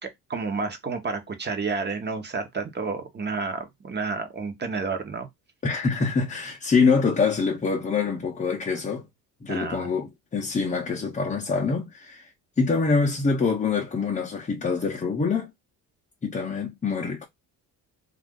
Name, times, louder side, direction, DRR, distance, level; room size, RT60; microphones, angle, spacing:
voice 1, 0.0-5.3 9.5-9.9, right 4 dB, 25° right, 0.9 m, -30 dB
voice 2, 5.6-9.1 9.4-12.3 12.6-15.5 16.2-17.3, left 4 dB, 20° left, 0.6 m, -25 dB
2.5 x 2.4 x 3.6 m
cardioid pair, 105°, 39 cm